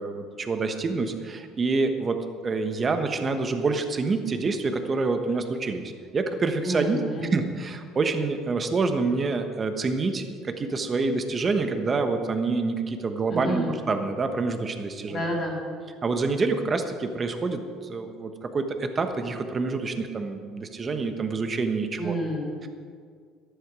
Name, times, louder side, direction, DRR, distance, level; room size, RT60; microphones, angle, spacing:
voice 1, 0.0-15.2 16.0-22.1 22.6-22.7, right 3 dB, 25° right, 7 dB, 1.1 m, -27 dB
voice 2, 6.6-7.3 13.3-13.7 15.1-15.5 22.0-22.5, equal, 35° left, -1 dB, 3.0 m, -29 dB
13.0 x 11.5 x 4.8 m, 2.1 s
cardioid pair, 130°, 0 cm